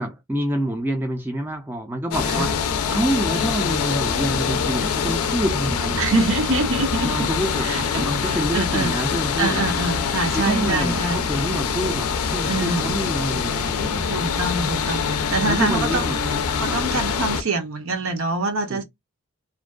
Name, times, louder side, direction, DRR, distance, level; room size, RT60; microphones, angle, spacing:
voice 1, 0.0-2.6 2.9-6.0 7.0-9.7 10.3-14.1 15.5-16.2 16.6-16.8 18.7-18.8, right 1 dB, 10° right, 0.3 m, -27 dB
sound 1, 2.1-17.4, left 6 dB, 80° left, 0.4 m, -24 dB
voice 2, 6.0-7.3 7.6-8.9 9.4-11.2 12.5-13.0 14.1-16.1 16.6-18.8, right 3 dB, 65° right, 0.6 m, -25 dB
2.5 x 2.2 x 2.3 m
head